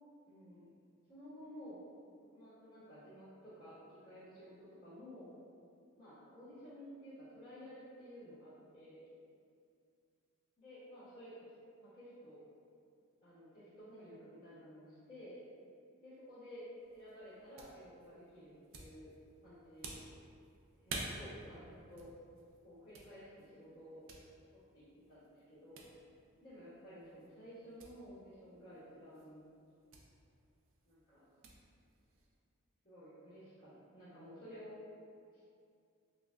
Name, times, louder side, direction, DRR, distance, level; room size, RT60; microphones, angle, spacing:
voice 1, 0.3-0.7 1.1-1.8 2.2-5.3 6.0-9.0 10.6-11.5 11.8-12.4 13.2-15.4 16.0-19.1 19.4-20.0 20.8-22.1 22.6-24.1 24.5-25.9 26.4-29.5 30.8-31.2 32.8-34.8 35.3-35.4, equal, 40° left, -18 dB, 1.5 m, -53 dB
sound 1, 16.8-32.4, right 3 dB, 65° right, 0.4 m, -53 dB
5.1 x 2.5 x 2.2 m, 2.4 s
head